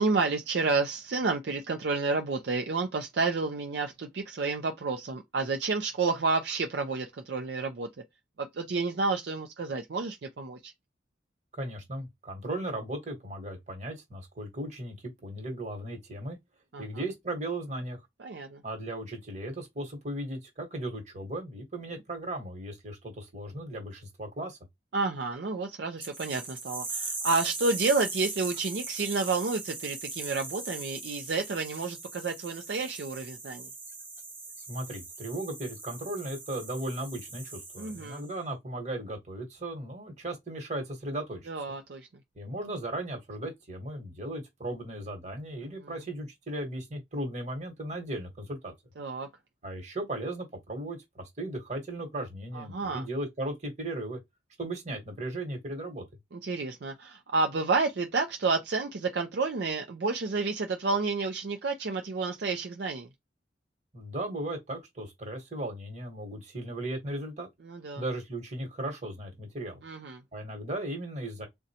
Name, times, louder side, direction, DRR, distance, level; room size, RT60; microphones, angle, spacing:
voice 1, 0.0-7.9 8.4-10.7 16.7-16.8 18.2-18.6 24.9-33.7 37.8-38.2 41.5-42.1 49.0-49.3 52.5-53.0 56.3-63.1 67.6-68.0 69.8-70.2, right 3 dB, 60° right, 0.4 m, -30 dB
voice 2, 11.5-14.9 15.2-16.4 16.8-18.0 18.6-24.6 34.7-41.4 42.4-48.7 49.6-54.2 54.6-56.0 63.9-67.5 68.0-69.8 70.3-71.5, right 1 dB, 40° right, 1.2 m, -36 dB
sound 1, 26.0-38.3, right 3 dB, 10° right, 0.5 m, -40 dB
3.9 x 2.2 x 2.7 m
head